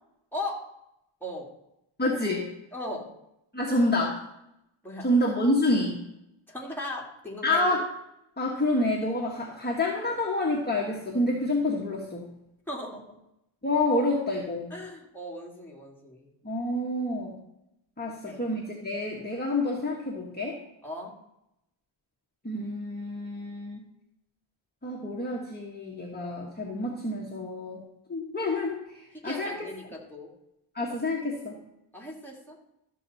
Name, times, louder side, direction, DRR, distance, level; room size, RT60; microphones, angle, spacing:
voice 1, 0.3-0.6 1.2-1.5 2.7-3.1 4.8-5.1 6.5-7.7 12.7-13.2 14.7-16.3 18.1-18.4 20.8-21.1 29.1-30.3 31.9-32.6, left 1 dB, 5° left, -3 dB, 2.4 m, -38 dB
voice 2, 2.0-2.5 3.5-4.2 5.0-6.0 7.4-7.8 8.4-12.3 13.6-14.7 16.4-17.4 18.0-20.6 22.4-23.8 24.8-27.8 28.1-29.7 30.7-31.6, left 1 dB, 20° left, -3 dB, 1.5 m, -28 dB
13.0 x 6.8 x 4.1 m, 0.83 s
wide cardioid pair, 110°, 50 cm